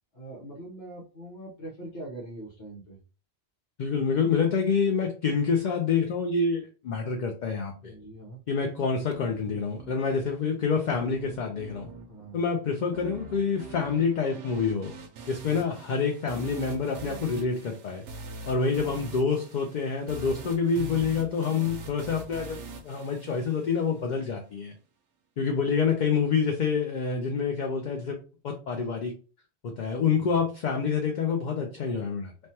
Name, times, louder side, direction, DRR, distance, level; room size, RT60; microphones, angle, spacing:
voice 1, 0.1-3.0 7.8-8.4 12.1-12.4 30.1-30.4, right 1 dB, 85° left, -4 dB, 1.2 m, -42 dB
voice 2, 3.8-7.9 8.5-11.9 12.3-14.9 15.3-18.0 18.5-22.6 22.8-24.7 25.4-28.2 28.4-29.1 29.6-32.3, left 5 dB, 55° left, 3 dB, 0.5 m, -27 dB
sound 1, 9.1-24.1, right 3 dB, 85° right, 0.9 m, -43 dB
3.3 x 2.1 x 2.7 m, 0.35 s
omnidirectional pair, 1.1 m